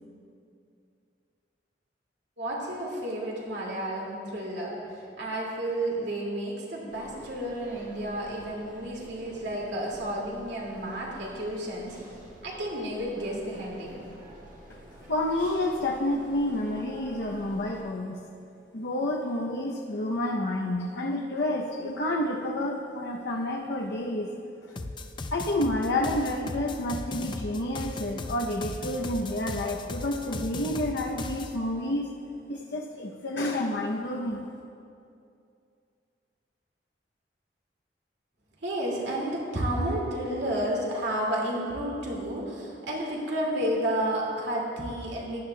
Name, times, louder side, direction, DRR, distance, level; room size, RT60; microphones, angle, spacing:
voice 1, 2.4-12.0 12.4-14.0 38.6-45.5, right 1 dB, 80° right, -3 dB, 2.1 m, -31 dB
sound 1, 6.9-17.8, right 1 dB, 45° right, 1.7 m, -48 dB
voice 2, 15.1-18.2 18.7-24.3 24.6-24.7 25.3-32.1 32.5-34.5, left 1 dB, 65° left, -1 dB, 0.6 m, -29 dB
sound 2, 24.8-31.5, left 2 dB, 25° left, 0.4 m, -37 dB
15.0 x 10.5 x 2.2 m, 2.5 s
head